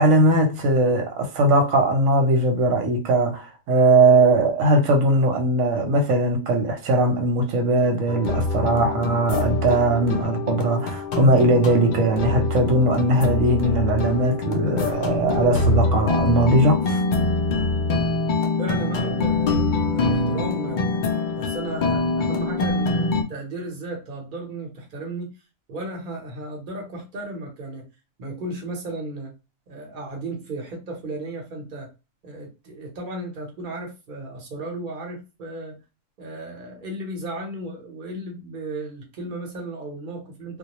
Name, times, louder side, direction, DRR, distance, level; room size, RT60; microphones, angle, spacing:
voice 1, 0.0-17.0, right 2 dB, 85° right, 1.0 m, -19 dB
sound 1, 8.1-23.2, left 3 dB, 70° left, 0.4 m, -24 dB
voice 2, 18.6-21.0 21.4-25.3 25.7-27.9 28.2-29.3 29.7-31.9 32.2-35.8 36.2-40.6, right 1 dB, 45° right, 0.9 m, -34 dB
2.2 x 2.1 x 2.9 m
omnidirectional pair, 1.3 m